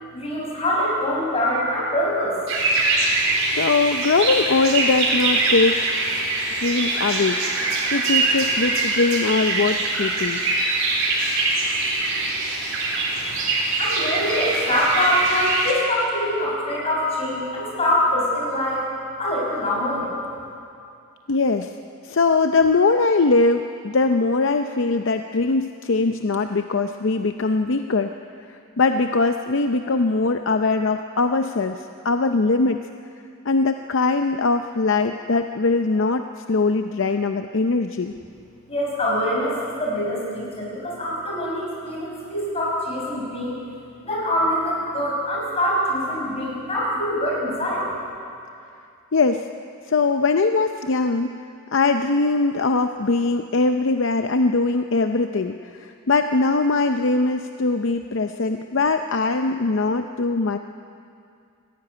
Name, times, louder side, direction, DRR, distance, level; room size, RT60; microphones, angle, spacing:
voice 1, 0.1-2.4 13.8-18.8 19.2-20.0 38.7-43.6 44.0-47.9, left 1 dB, 30° left, -3 dB, 6.2 m, -24 dB
sound 1, 2.5-15.7, right 3 dB, 85° right, 4.2 m, -23 dB
voice 2, 3.5-5.8 6.6-7.4 7.9-10.4 21.3-21.7 22.0-28.1 28.5-32.9 33.4-38.1 49.1-49.5 49.9-51.3 51.7-60.6, left 3 dB, 60° left, 7 dB, 0.6 m, -21 dB
18.5 x 15.0 x 9.9 m, 2.5 s
head